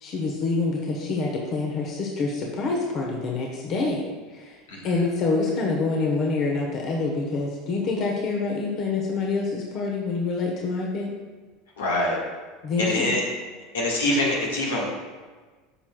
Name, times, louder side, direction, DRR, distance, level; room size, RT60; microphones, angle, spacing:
voice 1, 0.0-4.0 4.3-4.5 4.8-11.1 12.6-13.1, left 3 dB, 50° left, -1 dB, 1.1 m, -26 dB
voice 2, 11.8-12.2 12.8-13.2 13.7-14.9, left 1 dB, 80° left, -2 dB, 1.6 m, -24 dB
11.5 x 5.9 x 2.3 m, 1.4 s
hypercardioid pair, 80°, 0 cm